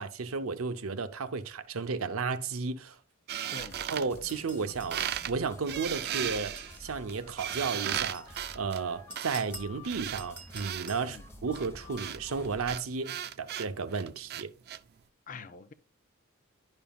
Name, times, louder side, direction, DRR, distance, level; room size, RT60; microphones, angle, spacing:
voice 1, 0.0-3.0 3.9-14.5, right 4 dB, 85° right, 0.7 m, -33 dB
sound 1, 3.3-4.6 4.9-5.3 5.7-10.9 11.5-14.8, right 11 dB, 50° right, 0.4 m, -36 dB
voice 2, 3.5-3.8 11.0-11.3 15.3-15.7, left 4 dB, 40° left, 0.5 m, -45 dB
sound 2, 3.6-12.8, left 2 dB, 10° left, 0.9 m, -50 dB
sound 3, 4.3-5.2 6.3-6.9 7.9-8.5 9.1-9.7 10.2-11.1, equal, 5° right, 1.3 m, -47 dB
11.5 x 5.4 x 2.3 m
head